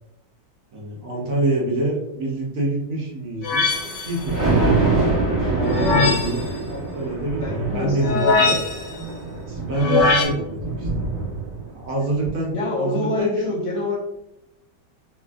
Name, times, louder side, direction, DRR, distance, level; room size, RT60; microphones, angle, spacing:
voice 1, 0.7-3.6 4.0-4.8 5.5-6.4 6.7-8.6 9.5-11.1 11.7-13.5, right 2 dB, 65° right, -3 dB, 0.9 m, -26 dB
sound 1, 3.4-4.2 5.6-6.4 8.0-9.0 9.8-10.3, left 3 dB, 85° left, 1.4 m, -21 dB
Thunder, 3.5-11.8 12.2-12.3, right 3 dB, 15° right, 1.2 m, -25 dB
voice 2, 5.6-6.3 7.4-8.5 12.5-14.0, left 3 dB, 65° left, -4 dB, 1.0 m, -26 dB
3.2 x 2.4 x 2.3 m, 0.87 s
omnidirectional pair, 1.9 m